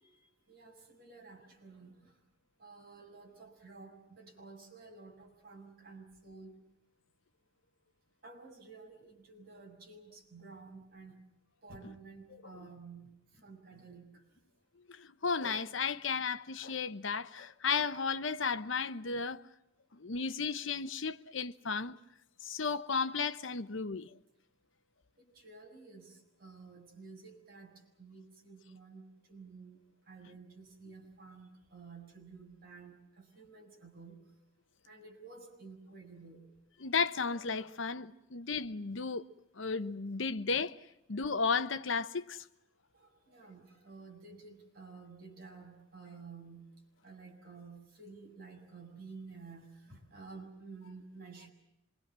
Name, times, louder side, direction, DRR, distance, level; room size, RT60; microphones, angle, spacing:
voice 1, 0.0-2.2 2.6-6.6 8.2-11.1 11.6-14.2 25.2-27.7 28.0-29.0 29.3-29.8 30.1-34.2 34.8-36.4 42.9-46.6 47.0-51.5, right 4 dB, 50° right, 6.6 m, -52 dB
voice 2, 15.0-19.4 19.9-22.0 22.4-24.1 36.8-39.2 39.6-40.8 41.1-42.4, left 5 dB, 70° left, 0.9 m, -34 dB
26.5 x 22.5 x 7.5 m
head